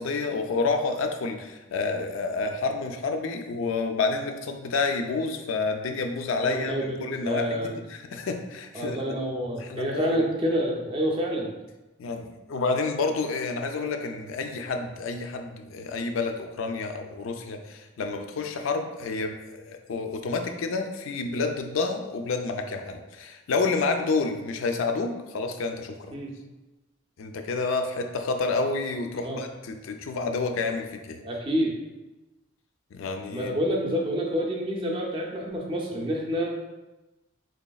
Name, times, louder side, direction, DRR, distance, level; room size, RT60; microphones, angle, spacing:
voice 1, 0.0-7.6 7.9-9.0 9.6-10.2 12.0-26.1 27.2-31.2 32.9-33.6, left 3 dB, 70° left, 5 dB, 0.4 m, -29 dB
voice 2, 6.4-7.7 8.7-11.5 26.1-26.3 29.2-29.4 31.2-31.8 33.3-36.5, equal, 25° right, -1 dB, 0.4 m, -28 dB
4.0 x 3.3 x 2.3 m, 1.1 s
head